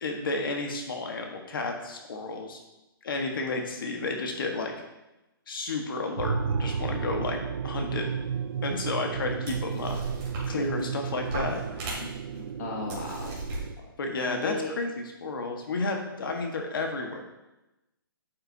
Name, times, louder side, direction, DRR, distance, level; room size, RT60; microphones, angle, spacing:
voice 1, 0.0-2.6 3.0-4.7 5.5-8.1 8.6-10.0 10.5-11.6 14.0-17.2, left 3 dB, 65° left, 3 dB, 1.5 m, -32 dB
sound 1, 6.2-13.8, right 6 dB, 75° right, 0.5 m, -33 dB
sound 2, 8.3-8.4 9.1-9.2 9.4-10.9 11.2-12.4 12.9-13.6, right 2 dB, 25° right, 2.6 m, -37 dB
voice 2, 10.5-10.8 12.3-13.4 13.8-13.9 14.3-14.7, left 4 dB, 45° left, -1 dB, 1.2 m, -35 dB
8.9 x 7.6 x 2.8 m, 0.98 s
hypercardioid pair, 170°, 13 cm